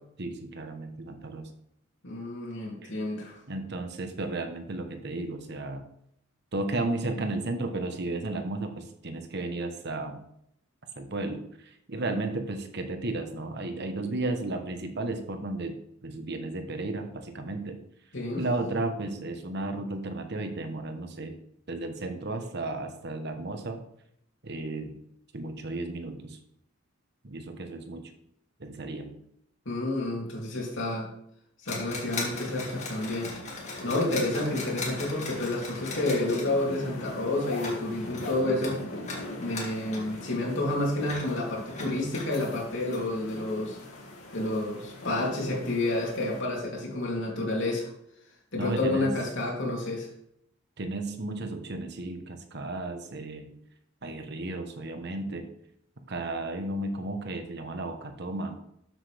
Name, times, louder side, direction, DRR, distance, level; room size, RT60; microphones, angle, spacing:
voice 1, 0.2-1.5 2.8-2.9 3.5-5.8 6.5-10.2 11.0-17.8 18.3-21.3 21.7-23.8 24.4-25.0 25.3-26.4 27.2-28.1 28.6-29.2 48.6-49.2 50.8-53.6 54.0-55.5 56.0-58.6, right 2 dB, 55° right, 6 dB, 1.2 m, -34 dB
voice 2, 2.0-3.4 14.0-14.3 18.1-18.4 29.6-31.1 31.6-33.3 33.8-38.8 39.4-43.8 44.3-47.9 48.5-50.1, left 2 dB, 60° left, -2 dB, 3.3 m, -30 dB
sound 1, 31.7-37.0 37.5-37.8 38.1-40.3 40.6-42.3 42.7-43.0, left 3 dB, 35° left, 2.4 m, -39 dB
sound 2, 32.0-46.4, left 1 dB, 80° left, 2.6 m, -41 dB
13.0 x 7.8 x 3.5 m, 0.74 s
head